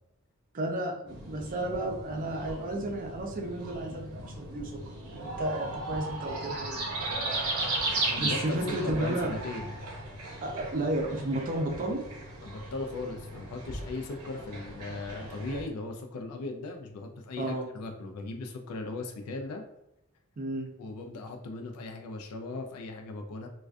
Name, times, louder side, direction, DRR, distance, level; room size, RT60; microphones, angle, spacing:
voice 1, 0.5-7.0 8.2-9.4 10.4-12.0 17.4-17.7 20.4-20.7, right 1 dB, 40° right, 2 dB, 0.4 m, -33 dB
Chaffinch Male Bird Song, 1.1-15.6, right 2 dB, 90° right, 0.7 m, -36 dB
voice 2, 7.9-9.7 12.4-19.6 20.8-23.5, left 3 dB, 85° left, 4 dB, 0.4 m, -38 dB
2.4 x 2.2 x 2.3 m, 0.84 s
head